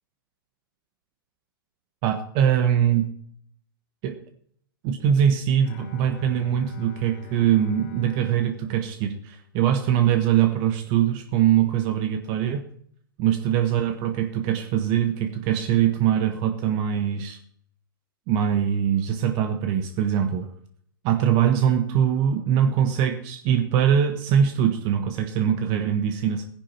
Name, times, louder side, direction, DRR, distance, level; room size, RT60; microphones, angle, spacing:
voice 1, 2.0-3.1 4.0-4.2 4.8-12.6 13.2-17.4 18.3-20.5 21.0-26.5, right 9 dB, 40° right, 6 dB, 1.3 m, -22 dB
Bowed string instrument, 5.6-9.8, left 8 dB, 45° left, 2.8 m, -44 dB
17.0 x 10.5 x 4.5 m, 0.65 s
figure-of-eight pair, 110°, 12 cm